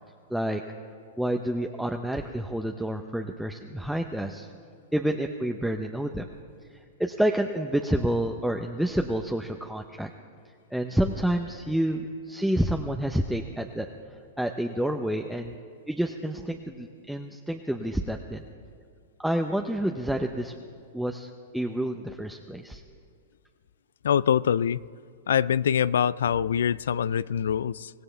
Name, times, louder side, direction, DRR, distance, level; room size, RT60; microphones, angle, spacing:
voice 1, 0.3-0.6 1.2-4.5 4.9-6.3 6.6-10.1 10.7-13.9 14.4-15.6 15.9-18.4 19.2-20.6 20.9-22.8, right 1 dB, ahead, 3 dB, 0.8 m, -29 dB
voice 2, 24.0-24.8 25.3-27.9, left 8 dB, 75° left, 20 dB, 0.3 m, -24 dB
24.5 x 17.5 x 3.4 m, 2.3 s
hypercardioid pair, 115°, 0 cm